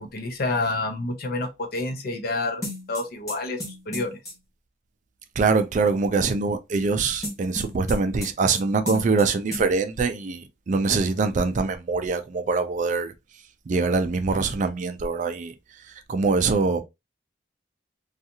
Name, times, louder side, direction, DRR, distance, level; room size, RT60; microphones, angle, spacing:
voice 1, 0.0-4.2, left 2 dB, 55° left, 0.6 m, -29 dB
sound 1, 2.6-4.3 7.2-8.6 8.9-9.3 9.5-9.6, left 1 dB, 15° left, 0.9 m, -33 dB
voice 2, 5.4-13.1 13.7-15.5 16.1-16.8, right 4 dB, 45° right, 0.3 m, -23 dB
2.6 x 2.3 x 2.7 m
head